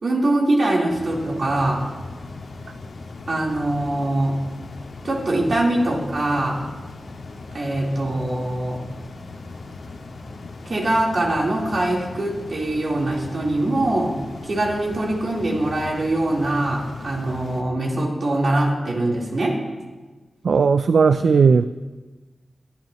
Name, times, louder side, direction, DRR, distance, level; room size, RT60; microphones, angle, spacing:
voice 1, 0.0-1.9 3.3-4.5 5.0-6.7 7.5-8.8 10.7-19.6, right 1 dB, 60° right, -4 dB, 3.6 m, -23 dB
sound 1, 0.9-17.6, left 3 dB, 80° left, 1.6 m, -38 dB
voice 2, 20.4-21.6, right 5 dB, 80° right, 12 dB, 0.3 m, -16 dB
22.0 x 12.0 x 3.0 m, 1.3 s
wide cardioid pair, 85°, 0 cm